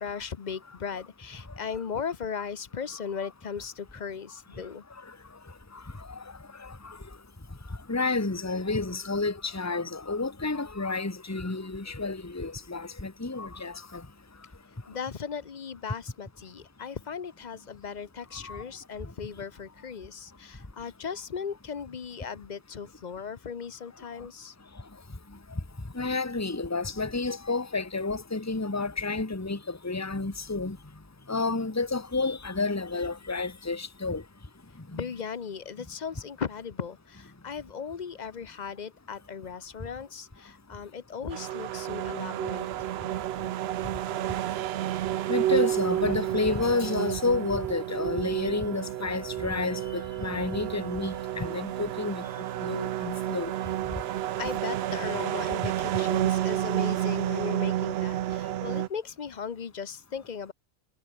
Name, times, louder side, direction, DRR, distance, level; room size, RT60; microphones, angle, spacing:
voice 1, 0.0-4.8 14.9-24.5 34.9-42.9 54.1-60.5, left 6 dB, 40° left, 0.8 m, -37 dB
voice 2, 7.9-13.7 18.5-18.6 26.0-30.8 31.3-34.2 34.9-35.0 45.3-52.2 52.6-53.5, left 3 dB, 10° left, 1.5 m, -30 dB
sound 1, 41.3-58.9, right 12 dB, 65° right, 0.7 m, -30 dB
omnidirectional pair, 1.4 m